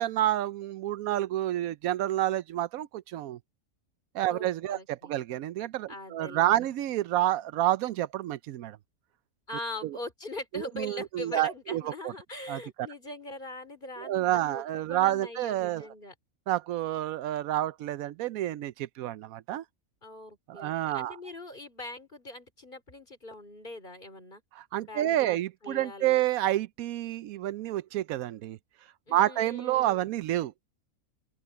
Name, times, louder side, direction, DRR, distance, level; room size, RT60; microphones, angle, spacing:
voice 1, 0.0-3.4 4.1-8.8 9.8-10.0 10.5-11.9 12.5-12.6 14.0-15.9 16.5-19.6 20.5-21.2 24.6-28.6 29.1-30.5, right 13 dB, 85° right, 1.0 m, -29 dB
voice 2, 4.3-5.2 5.9-6.7 9.5-16.1 20.0-24.4 24.9-26.3 29.1-30.1, left 2 dB, 35° left, 3.9 m, -42 dB
open air
omnidirectional pair, 1.4 m